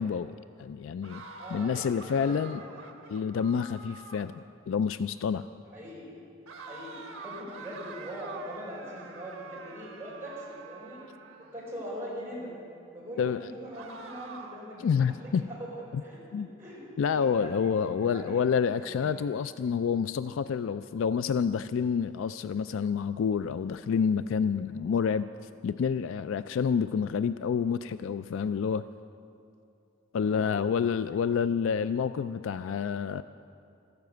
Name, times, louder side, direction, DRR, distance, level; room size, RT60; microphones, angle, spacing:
voice 1, 0.0-1.2 1.5-2.6 3.1-4.4 4.7-5.5 13.2-13.4 14.8-15.4 16.3-16.5 17.0-25.3 25.6-28.8 30.1-33.2, left 6 dB, 70° left, 12 dB, 0.3 m, -28 dB
sound 1, 1.0-4.4 6.5-11.7 13.7-14.8, right 4 dB, 80° right, 1.3 m, -46 dB
voice 2, 1.4-3.2 5.7-6.1 6.6-11.0 11.4-12.5 12.9-16.2 16.6-16.8 17.1-18.5 18.7-19.1 30.1-30.6, equal, 10° right, -6 dB, 4.8 m, -42 dB
13.5 x 12.0 x 7.9 m, 2.6 s
head